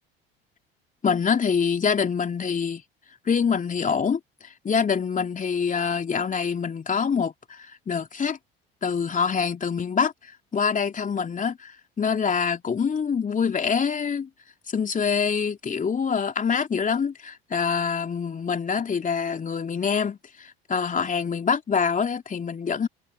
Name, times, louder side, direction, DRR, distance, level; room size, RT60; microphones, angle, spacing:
voice 1, 1.0-2.8 3.2-8.4 8.8-14.3 14.7-22.9, left 6 dB, 25° left, 3.0 m, -25 dB
figure-of-eight pair, 65°, 30 cm